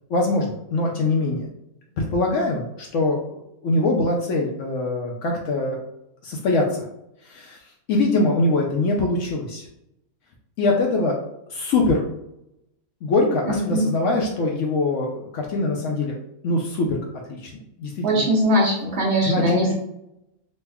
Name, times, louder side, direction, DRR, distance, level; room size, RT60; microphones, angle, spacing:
voice 1, 0.1-1.5 2.0-5.8 6.2-6.8 7.2-7.6 7.9-9.7 10.6-11.2 11.5-12.0 13.0-16.1 16.4-17.0 17.3-17.5 17.8-18.3 19.2-19.4, left 2 dB, 65° left, 0 dB, 0.8 m, -23 dB
voice 2, 13.5-13.8 18.0-19.7, equal, 55° right, -3 dB, 0.9 m, -21 dB
3.2 x 2.1 x 3.3 m, 0.82 s
omnidirectional pair, 1.6 m